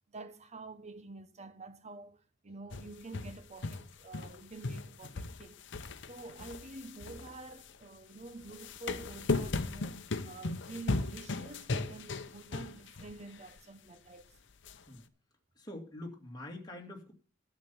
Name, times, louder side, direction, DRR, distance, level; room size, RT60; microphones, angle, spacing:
voice 1, 0.1-5.6 6.1-14.3, right 3 dB, 35° right, 0.9 m, -48 dB
sound 1, 2.7-4.4 4.6-7.8 8.4-13.1 13.5-13.6 14.6-14.7, left 3 dB, 65° left, 0.8 m, -37 dB
voice 2, 15.5-17.1, left 1 dB, 20° left, 2.3 m, -45 dB
11.5 x 7.2 x 7.0 m
head